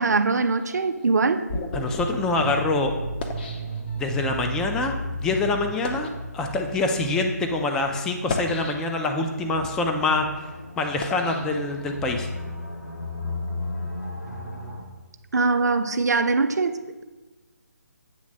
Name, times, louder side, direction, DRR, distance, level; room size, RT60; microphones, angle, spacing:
voice 1, 0.0-1.4 15.3-17.0, right 3 dB, 75° right, 9 dB, 0.6 m, -22 dB
sound 1, 0.6-4.3 5.0-5.2 5.7-6.2 7.0-7.2 8.1-9.2 9.7-12.2, left 2 dB, 35° left, 0.7 m, -35 dB
voice 2, 1.7-2.9 4.0-4.9 5.2-6.1 6.3-10.3 10.8-12.3, left 2 dB, 5° left, 4 dB, 0.3 m, -25 dB
sound 2, 2.3-14.8, equal, 90° left, 1.7 m, -35 dB
8.5 x 3.2 x 6.2 m, 1.2 s
figure-of-eight pair, 150°, 9 cm